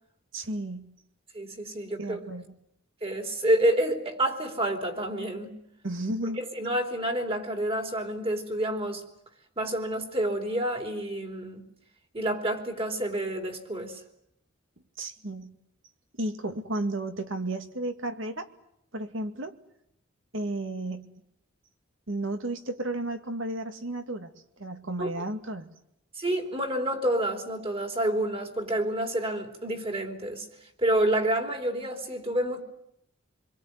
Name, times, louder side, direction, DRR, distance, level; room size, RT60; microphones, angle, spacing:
voice 1, 0.3-0.9 2.0-2.4 5.8-6.4 15.0-15.6 16.2-18.5 18.9-19.6 20.3-21.1 22.1-24.3 24.6-25.7, right 1 dB, 75° right, 7 dB, 2.2 m, -33 dB
voice 2, 1.3-2.2 3.0-5.5 6.4-9.0 9.6-11.6 12.1-14.0 25.0-25.1 26.2-30.5 30.8-32.6, right 1 dB, 30° right, 5 dB, 3.5 m, -28 dB
27.0 x 22.5 x 9.5 m, 0.77 s
head